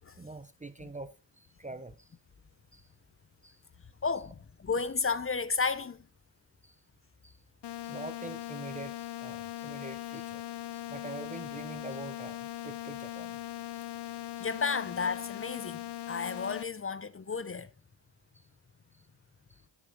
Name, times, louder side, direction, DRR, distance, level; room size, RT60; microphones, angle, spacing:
voice 1, 0.2-2.1 2.7-2.9 3.4-3.6 6.6-6.8 7.2-7.4 7.8-10.4 10.7-13.4 14.3-14.5 19.5-19.6, right 2 dB, 15° right, 0.7 m, -45 dB
voice 2, 4.0-6.0 14.4-17.7, left 5 dB, 25° left, 0.9 m, -32 dB
sound 1, 7.6-16.6, left 14 dB, 55° left, 0.8 m, -40 dB
11.5 x 6.3 x 4.9 m
cardioid pair, 65°, 49 cm